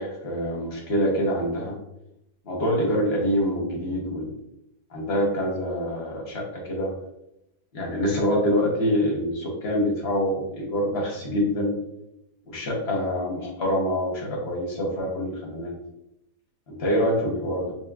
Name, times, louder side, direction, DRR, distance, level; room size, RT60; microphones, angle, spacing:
voice 1, 0.0-1.8 2.4-4.3 4.9-6.9 7.7-11.8 12.5-15.7 16.7-17.8, equal, 45° left, -1 dB, 1.0 m, -25 dB
5.5 x 2.6 x 2.4 m, 0.84 s
omnidirectional pair, 1.9 m